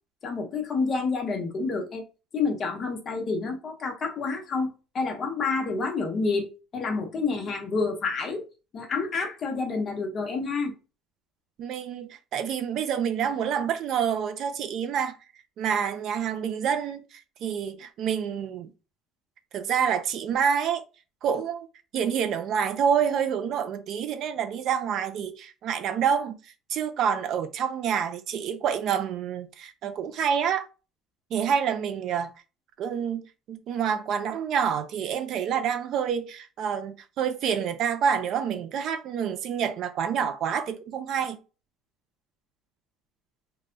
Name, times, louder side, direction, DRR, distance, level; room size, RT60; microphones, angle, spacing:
voice 1, 0.2-2.0 2.3-8.4 8.7-10.7, left 4 dB, 30° left, 0.9 m, -29 dB
voice 2, 11.6-15.2 15.6-18.7 19.5-20.8 21.2-21.7 21.9-30.7 31.3-32.3 32.8-41.4, right 7 dB, 45° right, 0.4 m, -27 dB
3.3 x 2.2 x 3.8 m
cardioid pair, 165°, 0 cm